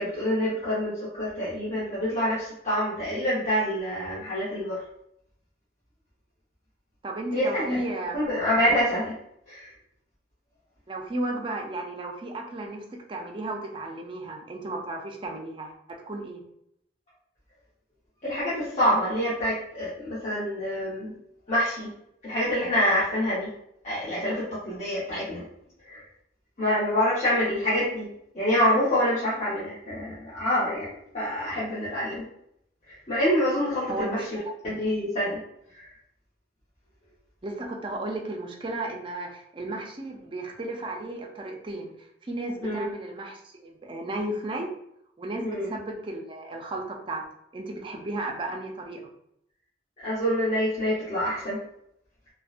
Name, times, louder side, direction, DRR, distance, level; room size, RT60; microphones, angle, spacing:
voice 1, 0.0-4.8 7.3-7.8 8.1-9.2 9.5-9.7 18.2-21.1 21.5-21.9 22.2-23.5 23.8-25.4 25.8-26.0 26.6-28.1 28.3-32.2 32.9-35.4 35.7-35.9 42.6-42.9 45.4-45.7 50.0-51.6, equal, 40° left, -11 dB, 0.8 m, -26 dB
voice 2, 7.0-8.3 10.9-16.4 33.9-34.5 37.4-41.9 42.2-44.7 45.2-47.2 47.5-49.1, right 2 dB, 30° right, 1 dB, 0.4 m, -34 dB
2.7 x 2.1 x 2.4 m, 0.74 s
head